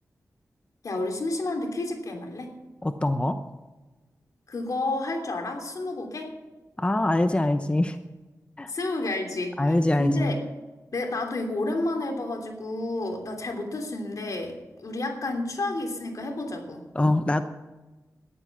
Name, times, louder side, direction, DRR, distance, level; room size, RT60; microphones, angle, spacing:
voice 1, 0.8-2.5 4.5-6.3 8.7-9.5 10.0-10.4 10.9-16.9, left 2 dB, 65° left, 3 dB, 3.1 m, -30 dB
voice 2, 2.8-3.4 6.8-8.0 8.6-8.7 9.6-10.4 16.9-17.4, left 1 dB, 20° left, 9 dB, 0.8 m, -23 dB
13.5 x 10.5 x 7.3 m, 1.2 s
cardioid pair, 65°, 6 cm